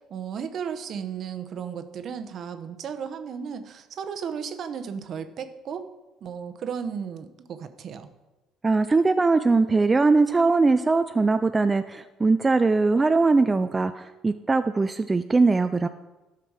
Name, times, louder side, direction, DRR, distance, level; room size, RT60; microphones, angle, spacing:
voice 1, 0.1-5.9 6.2-8.1, right 7 dB, 55° right, 10 dB, 0.8 m, -34 dB
voice 2, 8.6-15.9, right 3 dB, 20° right, 10 dB, 0.4 m, -21 dB
12.5 x 5.9 x 4.7 m, 1.1 s
cardioid pair, 100°, 0 cm